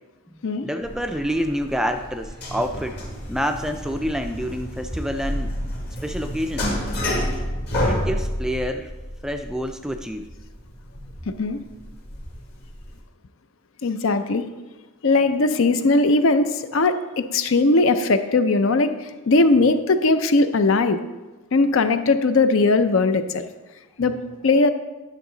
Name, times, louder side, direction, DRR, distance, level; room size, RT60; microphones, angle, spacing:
voice 1, 0.3-3.0 3.3-5.5 6.0-6.8 7.9-8.9 9.2-10.3 24.0-24.4, equal, 5° right, 6 dB, 0.3 m, -28 dB
sound 1, 0.8-13.0, equal, 50° left, 1.8 m, -30 dB
voice 2, 11.3-11.6 13.8-14.4 15.0-18.9 19.3-21.0 21.5-23.4 24.0-24.2 24.4-24.7, left 3 dB, 65° left, 10 dB, 0.5 m, -19 dB
11.0 x 6.3 x 3.9 m, 1.2 s
head